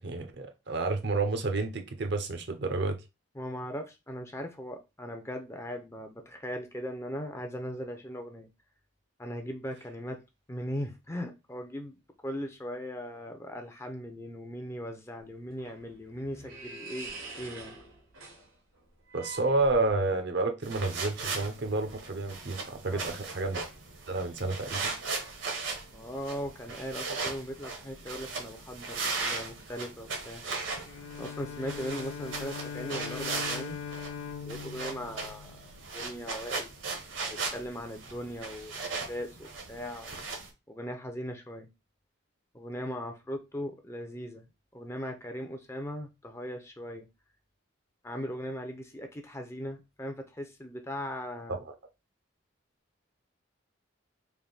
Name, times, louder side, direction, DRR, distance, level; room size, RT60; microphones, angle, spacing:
voice 1, 0.0-3.0 19.1-23.6 24.1-24.9 51.5-51.7, right 3 dB, 55° right, 0.6 m, -30 dB
voice 2, 3.4-8.5 9.2-10.2 10.5-11.9 12.2-17.8 22.9-23.2 25.9-30.4 31.2-33.8 34.4-35.5 35.9-36.7 37.5-40.1 40.7-41.7 42.5-44.4 44.7-47.1 48.0-51.6, equal, 15° left, 0.5 m, -39 dB
sound 1, 15.2-20.2, right 3 dB, 85° right, 1.4 m, -46 dB
sound 2, 20.6-40.5, right 4 dB, 70° right, 1.1 m, -38 dB
Bowed string instrument, 30.9-36.1, left 7 dB, 80° left, 0.3 m, -41 dB
3.4 x 2.6 x 3.9 m
head